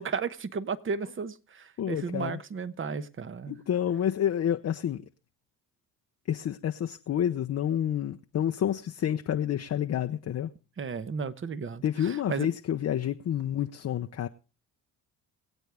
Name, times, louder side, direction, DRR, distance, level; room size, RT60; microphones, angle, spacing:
voice 1, 0.0-3.6 10.8-12.5, right 5 dB, 35° right, 1.0 m, -34 dB
voice 2, 1.8-2.4 3.5-5.0 6.3-10.5 11.8-14.3, left 10 dB, 45° left, 0.7 m, -29 dB
22.5 x 8.1 x 3.4 m
supercardioid pair, 70°, 37 cm